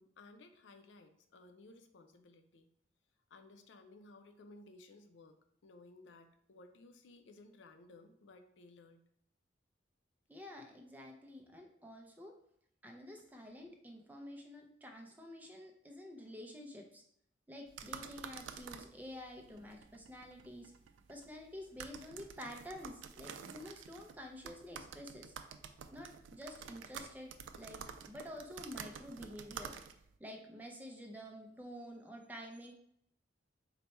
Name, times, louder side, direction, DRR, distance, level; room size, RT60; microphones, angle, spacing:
voice 1, 0.0-2.7 3.3-9.0, left 2 dB, 75° left, 7 dB, 0.4 m, -58 dB
voice 2, 10.3-12.3 12.8-17.0 17.5-20.7 21.1-25.3 25.9-29.7 30.2-32.7, left 1 dB, 10° right, 2 dB, 0.5 m, -49 dB
sound 1, 17.7-30.2, right 7 dB, 85° right, 0.3 m, -50 dB
4.0 x 2.2 x 4.2 m, 0.68 s
head